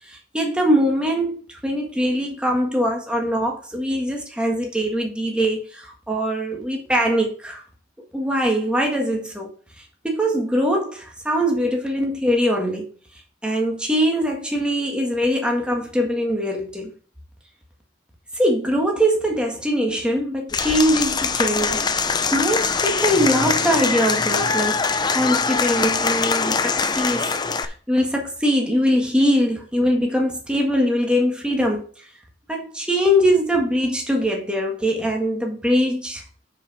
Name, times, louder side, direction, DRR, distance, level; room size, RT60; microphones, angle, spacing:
voice 1, 0.3-1.4 1.6-7.6 8.1-9.5 10.0-12.8 13.4-16.9 18.4-21.9 22.3-24.8 25.1-27.3 27.6-31.8 32.5-36.2, equal, 5° right, 1.7 m, -22 dB
Applause / Crowd, 20.5-27.6, left 5 dB, 20° left, 0.5 m, -22 dB
6.5 x 5.1 x 5.7 m
head